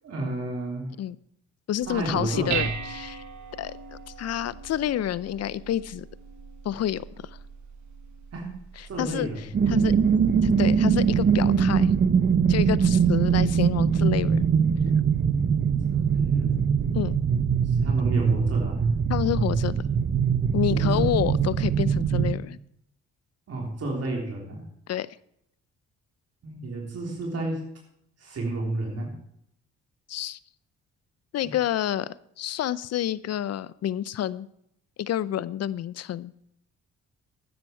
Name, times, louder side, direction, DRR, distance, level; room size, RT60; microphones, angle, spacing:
voice 1, 0.0-0.9 1.9-2.7 8.3-8.5 8.9-9.5 15.9-16.7 17.6-18.9 20.7-21.1 23.5-24.6 26.4-27.6 28.2-29.1 31.4-31.5, right 2 dB, 60° right, -1 dB, 3.6 m, -31 dB
voice 2, 1.7-3.2 3.6-3.8 4.2-6.0 6.6-7.0 9.0-9.3 9.7-10.0 10.4-11.9 12.5-14.5 16.9-17.1 19.1-19.7 20.5-22.6 24.9-25.1 30.1-30.4 31.3-34.5 35.0-36.3, left 11 dB, 60° left, 19 dB, 0.6 m, -28 dB
Dishes pots and pans, 1.8-11.1, right 8 dB, 80° right, 1.2 m, -39 dB
sound 1, 9.5-22.3, right 6 dB, 40° right, 0.8 m, -22 dB
12.0 x 9.7 x 4.6 m, 0.74 s
cardioid pair, 75°, 29 cm